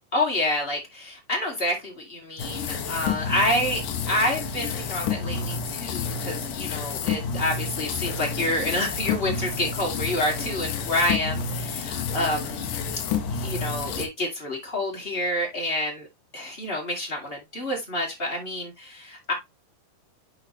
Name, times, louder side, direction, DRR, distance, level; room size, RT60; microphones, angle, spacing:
voice 1, 0.1-3.8 4.1-13.0 13.3-16.1 16.3-19.3, left 1 dB, 20° left, 1.6 m, -28 dB
sound 1, 2.4-14.1, left 5 dB, 70° left, 2.6 m, -30 dB
10.5 x 4.0 x 3.0 m
omnidirectional pair, 4.0 m